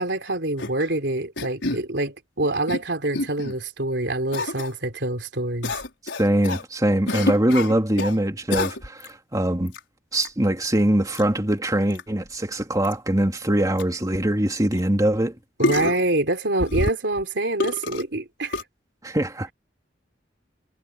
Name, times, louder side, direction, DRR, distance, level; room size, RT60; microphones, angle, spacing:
voice 1, 0.0-5.8 15.6-18.6, right 2 dB, 70° right, 3.9 m, -26 dB
sound 1, 0.6-0.9 1.4-1.8 2.4-2.8 3.1-3.5 4.3-4.7 5.6-6.6 7.1-8.2 8.5-9.1 9.7-9.8 10.1-10.3 11.1-11.2 11.9-12.0 12.3-12.4 12.8-12.9 13.5-13.6 13.8-13.9 14.7-14.8 15.6-16.1 16.6-17.2 17.6-18.1 18.5-18.6, left 2 dB, 85° left, 5.0 m, -27 dB
voice 2, 6.2-9.7 10.1-15.4 19.0-19.5, right 1 dB, 20° right, 2.7 m, -22 dB
head